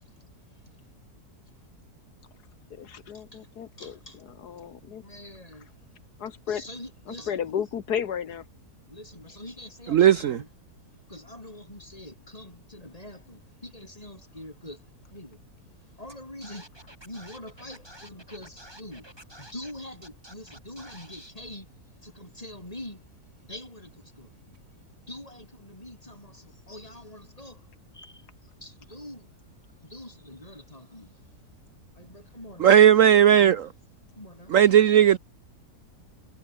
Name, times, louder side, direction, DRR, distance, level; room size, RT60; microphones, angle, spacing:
voice 1, 2.7-3.9 4.4-5.0 6.2-6.6 7.3-8.4, left 8 dB, 80° left, 1.8 m, -32 dB
voice 2, 3.8-4.2 5.0-5.7 6.5-7.4 8.9-10.5 11.1-14.8 15.1-15.4 16.0-16.6 17.0-19.0 19.4-21.7 22.0-23.0 23.5-23.9 24.2-24.3 25.1-27.6 27.9-28.2 28.6-29.3 29.8-31.1 32.0-32.8 34.2-34.5, left 1 dB, 20° left, 6.4 m, -44 dB
voice 3, 9.9-10.4 32.6-33.7 34.5-35.2, right 10 dB, 60° right, 1.0 m, -16 dB
Scratching (performance technique), 16.1-16.2 16.4-19.7 20.0-21.3, right 1 dB, 15° right, 5.5 m, -49 dB
omnidirectional pair, 1.7 m